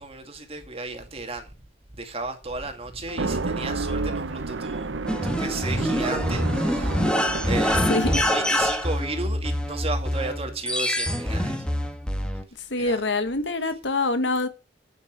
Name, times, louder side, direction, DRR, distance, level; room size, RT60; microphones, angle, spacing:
voice 1, 0.0-1.5 1.9-11.7 12.8-13.0, right 3 dB, 35° right, 2.3 m, -34 dB
sound 1, 3.1-8.7, right 3 dB, 90° right, 0.9 m, -31 dB
sound 2, 5.1-12.4, equal, 5° left, 1.5 m, -25 dB
voice 2, 12.7-14.5, left 2 dB, 75° left, 1.4 m, -25 dB
9.0 x 8.6 x 6.1 m
head